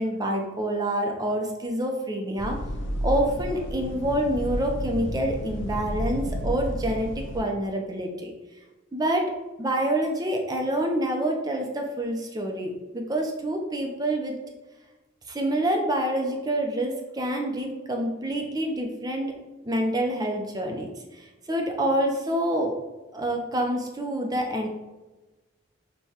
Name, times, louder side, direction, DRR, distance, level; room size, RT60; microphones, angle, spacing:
voice 1, 0.0-2.6 3.0-8.3 8.9-9.3 9.6-14.3 15.3-19.3 19.6-20.9 21.1-22.7 23.1-24.7, right 1 dB, 20° right, 1 dB, 0.4 m, -27 dB
sound 1, 2.4-7.4, equal, 70° left, 0.5 m, -31 dB
6.4 x 2.2 x 2.8 m, 1.2 s
head